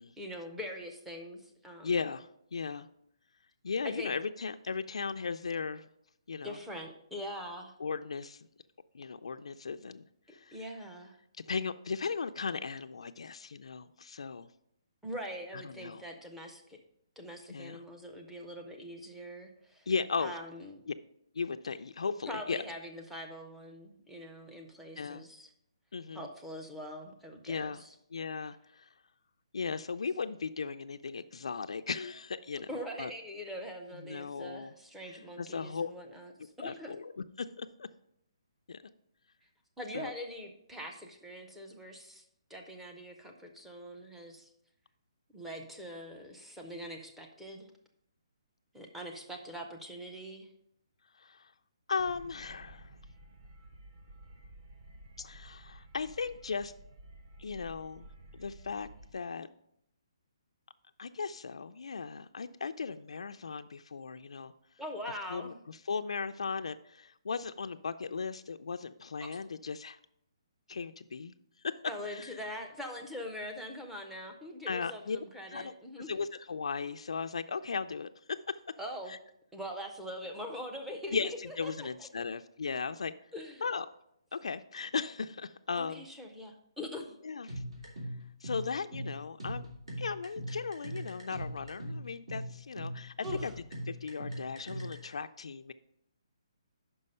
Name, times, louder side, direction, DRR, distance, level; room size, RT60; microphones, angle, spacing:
voice 1, 0.2-2.0 3.8-4.2 6.4-7.7 10.5-11.2 15.0-16.8 17.2-19.9 20.2-20.9 22.3-25.5 26.1-27.9 32.7-36.9 39.8-42.2 42.5-44.5 45.3-47.7 48.7-50.5 64.8-65.6 71.9-76.1 78.8-79.1 79.5-81.9 82.2-82.3 83.3-83.6 85.7-87.2 93.2-93.5, equal, ahead, 2 dB, 0.4 m, -43 dB
voice 2, 1.8-2.9 3.6-5.9 6.3-6.6 7.8-8.5 8.9-10.6 11.4-14.5 15.5-16.0 17.5-17.8 19.9-20.3 20.9-21.0 21.3-22.6 25.0-25.2 25.9-26.3 27.4-27.8 28.1-28.9 29.5-33.1 33.9-34.7 35.1-35.9 36.6-37.1 37.4-37.9 38.7-38.8 39.9-40.1 51.1-51.5 51.9-53.0 55.2-56.7 57.4-58.1 58.3-59.5 61.0-64.5 65.3-70.0 70.7-71.3 71.6-71.8 72.1-72.3 74.7-75.2 75.5-75.7 76.1-78.6 79.1-79.2 81.1-83.1 83.6-83.9 84.3-86.1 87.2-87.6 88.4-89.7 90.0-93.5 93.9-95.7, left 5 dB, 90° left, 9 dB, 0.3 m, -37 dB
sound 1, 52.0-59.1, right 1 dB, 40° right, 1.0 m, -53 dB
sound 2, 87.5-95.1, equal, 80° right, 2.7 m, -40 dB
5.7 x 5.4 x 5.3 m, 0.75 s
hypercardioid pair, 175°, 3 cm